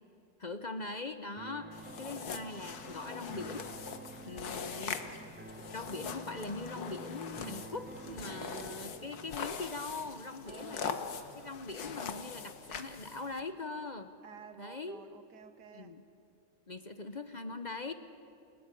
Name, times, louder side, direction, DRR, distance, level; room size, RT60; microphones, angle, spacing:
voice 1, 0.4-3.7 4.2-5.0 5.7-11.0 11.3-14.1 14.6-15.0 15.7-16.0 16.7-17.9, left 3 dB, 40° left, 9 dB, 0.7 m, -41 dB
sound 1, 1.4-9.4, right 2 dB, 10° right, 0.5 m, -49 dB
sound 2, 1.7-13.4, left 6 dB, 65° left, 1.8 m, -42 dB
voice 2, 4.3-5.4 8.1-9.0 10.4-10.9 14.2-16.0, right 6 dB, 80° right, 10 dB, 2.0 m, -52 dB
28.5 x 18.5 x 9.8 m, 2.7 s
omnidirectional pair, 1.8 m